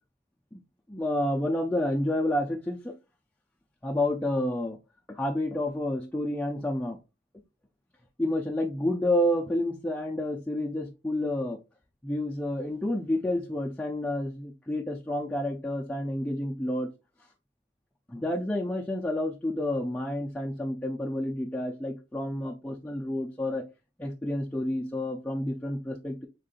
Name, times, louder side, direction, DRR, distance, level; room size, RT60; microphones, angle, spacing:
voice 1, 0.9-2.9 3.8-4.8 5.1-7.0 8.2-11.6 12.0-16.9 18.1-23.7 24.0-26.3, left 1 dB, 10° left, -2 dB, 0.5 m, -29 dB
5.2 x 3.8 x 2.4 m, 0.27 s
head